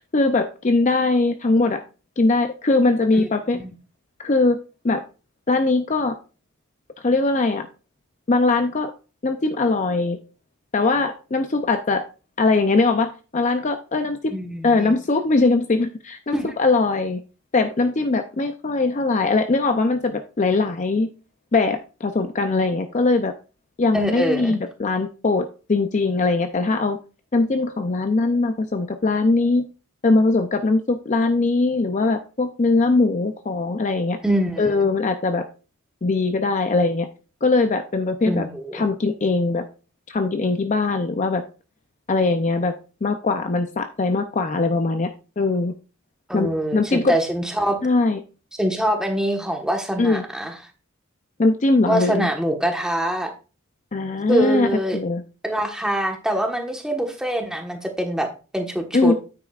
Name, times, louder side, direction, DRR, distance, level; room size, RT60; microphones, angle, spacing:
voice 1, 0.1-1.8 2.2-3.6 4.2-4.6 4.8-5.0 5.5-6.1 7.0-7.7 8.3-8.9 9.2-10.2 10.7-12.0 12.4-14.3 14.6-17.2 17.5-21.1 21.5-23.3 23.8-27.0 27.3-29.6 30.0-34.2 34.6-35.4 36.0-37.1 37.4-38.5 38.7-39.6 40.1-41.4 42.1-42.7 43.0-45.1 45.4-45.7 46.3-47.2 47.8-48.2 50.0-50.2 51.4-52.3 53.9-55.2 58.9-59.1, left 3 dB, 35° left, 7 dB, 0.5 m, -21 dB
voice 2, 14.3-15.0 16.3-16.5 23.9-24.5 34.2-34.9 38.2-38.8 46.3-47.8 48.6-50.5 51.9-53.3 54.3-55.0 55.4-59.1, right 1 dB, 5° right, 3 dB, 1.2 m, -24 dB
9.5 x 8.5 x 2.4 m, 0.33 s
head